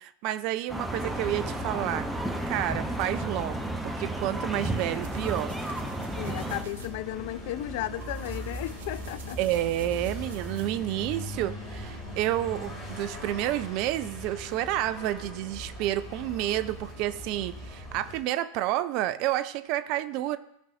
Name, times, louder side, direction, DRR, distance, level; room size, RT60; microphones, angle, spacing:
voice 1, 0.0-2.1 2.5-5.5 9.4-20.4, right 13 dB, 40° right, 13 dB, 0.4 m, -30 dB
sound 1, 0.7-6.6, right 1 dB, ahead, 0.9 m, -33 dB
sound 2, 0.9-18.2, equal, 30° left, 2.9 m, -40 dB
sound 3, 4.4-6.9 7.9-11.1, right 6 dB, 60° right, 0.9 m, -48 dB
voice 2, 6.2-9.4, left 14 dB, 50° left, 16 dB, 0.3 m, -35 dB
14.5 x 5.4 x 2.7 m, 0.77 s
figure-of-eight pair, 90°, 0 cm